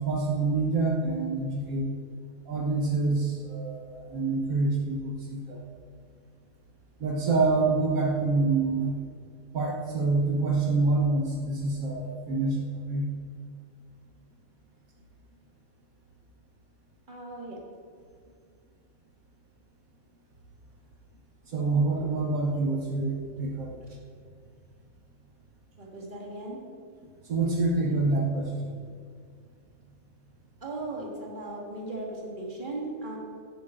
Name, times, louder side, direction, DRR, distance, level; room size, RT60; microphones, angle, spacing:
voice 1, 0.0-1.9 2.5-5.6 7.0-9.0 9.5-12.6 12.9-13.1 21.5-23.7 27.3-28.8, right 3 dB, 80° right, -2 dB, 1.8 m, -26 dB
voice 2, 17.1-17.6 25.8-26.6 30.6-33.2, right 2 dB, 35° right, -2 dB, 2.2 m, -37 dB
17.0 x 8.4 x 3.8 m, 2.1 s
omnidirectional pair, 1.5 m